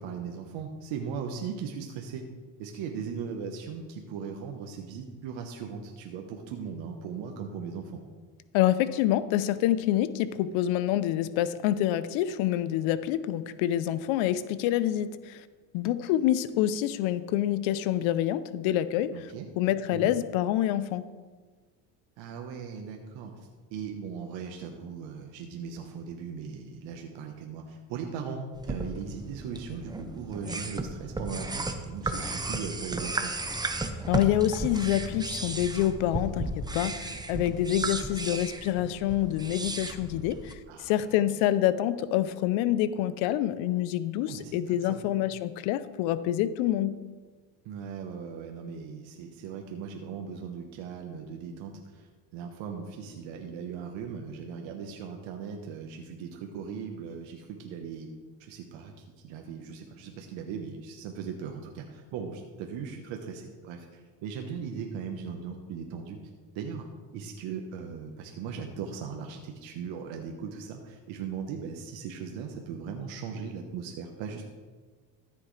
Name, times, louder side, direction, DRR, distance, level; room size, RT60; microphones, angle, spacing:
voice 1, 0.0-2.2 2.6-8.0 19.1-19.5 19.9-20.1 22.2-33.3 40.7-41.0 44.2-45.0 47.6-58.1 58.4-66.2 66.5-66.9 67.1-74.5, right 6 dB, 75° right, 3 dB, 1.2 m, -38 dB
voice 2, 8.5-15.4 15.7-19.1 19.6-21.0 34.1-47.0, left 12 dB, 80° left, 14 dB, 0.7 m, -27 dB
sound 1, 28.5-40.5, right 2 dB, 10° right, 0.6 m, -35 dB
13.5 x 7.8 x 3.2 m, 1.4 s
cardioid pair, 105°, 46 cm